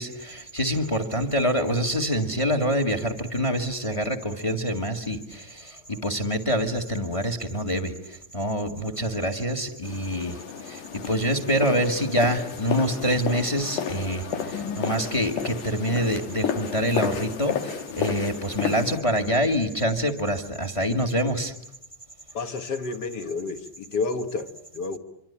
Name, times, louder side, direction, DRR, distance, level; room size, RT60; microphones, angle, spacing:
voice 1, 0.0-21.5, equal, 15° left, 6 dB, 1.3 m, -26 dB
sound 1, 9.8-19.0, left 7 dB, 90° left, 3.4 m, -32 dB
voice 2, 22.3-25.0, left 4 dB, 45° left, 9 dB, 1.6 m, -30 dB
26.5 x 25.5 x 8.7 m, 0.79 s
omnidirectional pair, 3.5 m